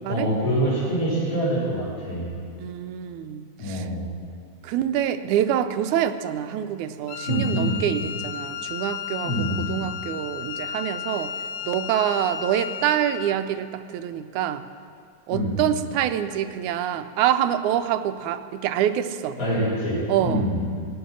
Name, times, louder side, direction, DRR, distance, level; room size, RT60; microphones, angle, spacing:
voice 1, 0.1-2.3 3.6-4.1 7.3-7.8 9.2-9.7 15.3-15.6 19.4-20.6, equal, 30° left, -10 dB, 5.0 m, -25 dB
voice 2, 2.6-3.9 4.6-11.4 11.6-14.6 15.3-19.4 20.1-20.5, right 10 dB, 85° right, 10 dB, 2.1 m, -26 dB
Wind instrument woodwind instrument, 7.1-13.4, left 8 dB, 75° left, 1.6 m, -34 dB
19.0 x 8.2 x 6.2 m, 2.3 s
omnidirectional pair, 3.4 m